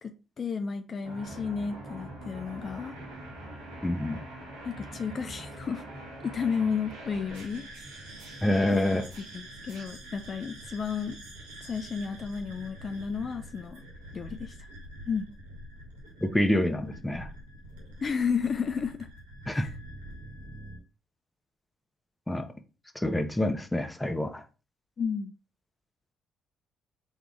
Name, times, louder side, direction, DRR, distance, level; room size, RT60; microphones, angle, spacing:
voice 1, 0.0-3.0 4.6-5.8 6.2-7.7 8.7-9.0 9.3-11.2 11.6-13.8 14.1-14.6 15.1-15.3 18.0-19.1 19.5-19.7 25.0-25.3, left 6 dB, 50° left, 0.4 m, -32 dB
sound 1, 1.0-20.8, right 1 dB, 90° right, 1.3 m, -45 dB
voice 2, 3.8-4.2 8.4-9.1 16.2-17.3 19.5-19.7 22.3-22.4 23.0-24.4, left 1 dB, 10° left, 0.8 m, -27 dB
3.7 x 3.1 x 3.5 m
hypercardioid pair, 50°, 0 cm